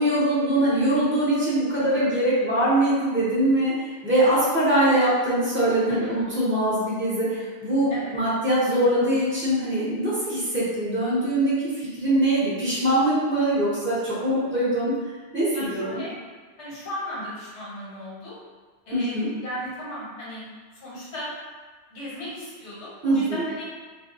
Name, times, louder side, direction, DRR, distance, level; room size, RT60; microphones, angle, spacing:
voice 1, 0.0-3.7 4.0-14.9 15.3-16.0 18.9-19.3 23.0-23.2, right 1 dB, 15° right, -9 dB, 0.5 m, -22 dB
voice 2, 15.5-16.1 16.6-18.3 18.9-20.4 20.8-21.3 21.9-23.6, equal, 75° left, -7 dB, 1.2 m, -36 dB
2.4 x 2.2 x 2.7 m, 1.4 s
omnidirectional pair, 1.2 m